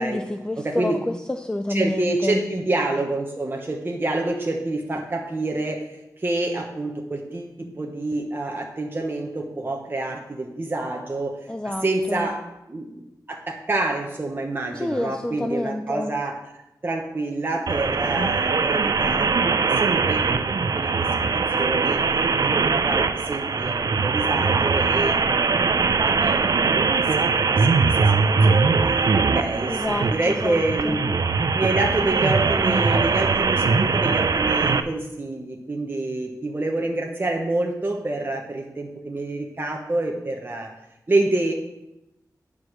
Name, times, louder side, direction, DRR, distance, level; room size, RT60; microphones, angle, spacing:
voice 1, 0.0-2.4 11.5-12.3 14.8-16.1 29.7-31.0, left 1 dB, 10° left, 6 dB, 0.4 m, -28 dB
voice 2, 0.6-1.0 1.7-5.8 6.2-11.4 11.6-13.0 13.3-16.3 16.8-19.5 19.8-20.9 21.3-22.0 22.4-28.0 28.5-28.7 29.2-31.0 31.5-40.7 41.1-41.5, right 2 dB, 30° right, 0 dB, 1.0 m, -27 dB
sound 1, 17.7-34.8, right 4 dB, 60° right, 0.5 m, -21 dB
9.3 x 4.9 x 6.2 m, 0.90 s
wide cardioid pair, 110°, 7 cm